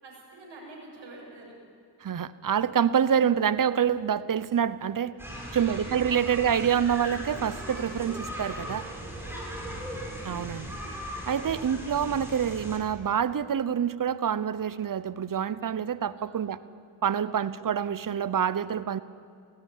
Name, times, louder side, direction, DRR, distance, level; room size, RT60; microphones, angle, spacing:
voice 1, 0.0-1.5 5.3-6.3 9.1-9.6 11.4-11.6 16.2-16.5 17.1-17.5, right 2 dB, 60° right, -3 dB, 7.1 m, -48 dB
voice 2, 2.0-5.1 5.5-8.8 10.2-10.7 11.3-16.6 17.0-19.0, right 8 dB, 40° right, 16 dB, 0.9 m, -26 dB
sound 1, 5.2-12.8, equal, 5° right, 7.0 m, -38 dB
18.0 x 16.0 x 9.3 m, 2.3 s
supercardioid pair, 55°, 49 cm